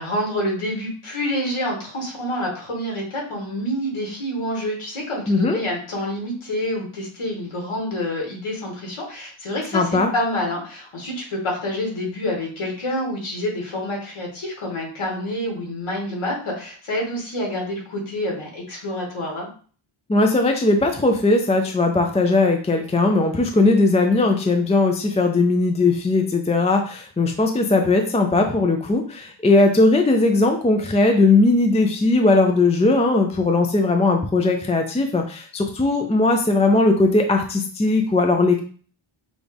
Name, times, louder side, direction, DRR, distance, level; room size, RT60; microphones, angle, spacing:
voice 1, 0.0-19.5, left 1 dB, 80° left, -1 dB, 1.9 m, -27 dB
voice 2, 5.3-5.6 9.7-10.1 20.1-38.6, left 2 dB, 15° left, 4 dB, 0.4 m, -18 dB
6.1 x 2.4 x 3.4 m, 0.42 s
wide cardioid pair, 140°, 49 cm